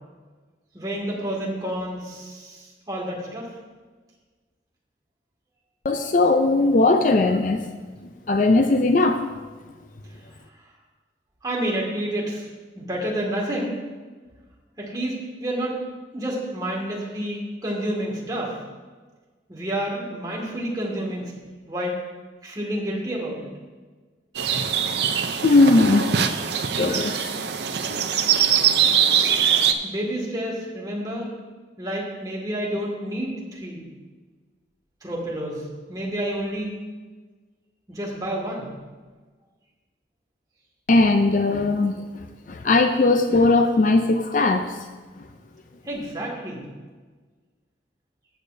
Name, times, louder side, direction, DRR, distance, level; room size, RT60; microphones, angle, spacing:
voice 1, 0.7-3.5 11.4-12.5 12.8-13.7 14.8-15.8 16.1-18.6 19.5-21.3 21.7-22.0 22.4-23.5 29.8-31.3 31.8-33.9 35.0-36.9 37.9-38.7 45.8-46.6, right 1 dB, 20° right, -3 dB, 2.1 m, -29 dB
voice 2, 5.8-7.6 8.3-9.2 25.4-27.2 27.9-28.0 40.9-42.0 42.5-44.7, left 2 dB, 45° left, 6 dB, 0.5 m, -19 dB
sound 1, 24.3-29.7, right 8 dB, 70° right, 0.5 m, -22 dB
15.0 x 8.2 x 2.7 m, 1.4 s
head